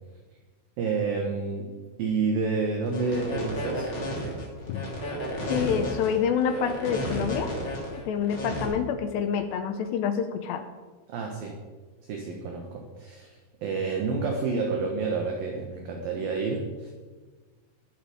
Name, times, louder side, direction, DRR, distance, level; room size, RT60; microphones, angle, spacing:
voice 1, 0.8-1.7 2.0-3.9 11.1-11.6 12.0-16.9, right 4 dB, 70° right, 2 dB, 2.3 m, -29 dB
sound 1, 2.9-8.6, equal, 25° left, 3.0 m, -32 dB
voice 2, 5.5-7.5 8.1-10.7, left 7 dB, 80° left, 8 dB, 2.6 m, -27 dB
20.5 x 7.3 x 5.1 m, 1.4 s
omnidirectional pair, 5.5 m